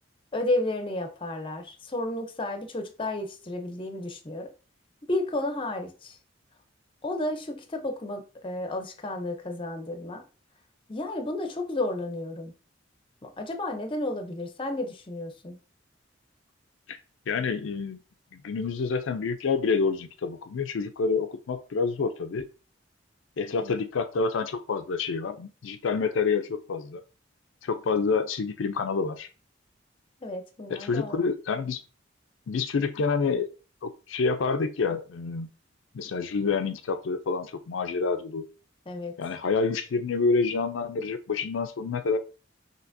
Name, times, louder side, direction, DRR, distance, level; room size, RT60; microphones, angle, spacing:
voice 1, 0.3-4.5 5.1-6.2 7.0-10.2 10.9-12.5 13.2-15.6 23.6-23.8 30.2-31.3 38.9-39.2, left 2 dB, 25° left, 0.6 m, -32 dB
voice 2, 17.3-18.0 18.4-22.5 23.4-27.0 27.6-29.3 30.7-31.8 32.5-33.5 33.8-35.5 35.9-38.4 39.2-42.2, left 4 dB, 80° left, 0.4 m, -28 dB
5.8 x 2.8 x 2.6 m
head